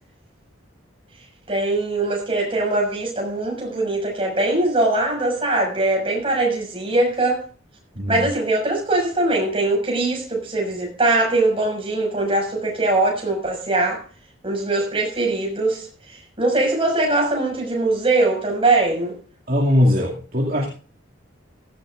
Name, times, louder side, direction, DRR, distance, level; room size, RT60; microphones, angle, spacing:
voice 1, 1.5-7.4 8.1-14.0 14.4-19.2, right 2 dB, 25° right, 6.1 m, -21 dB
voice 2, 7.9-8.3 19.5-20.7, left 1 dB, 45° right, 2.4 m, -20 dB
16.0 x 15.0 x 2.5 m
head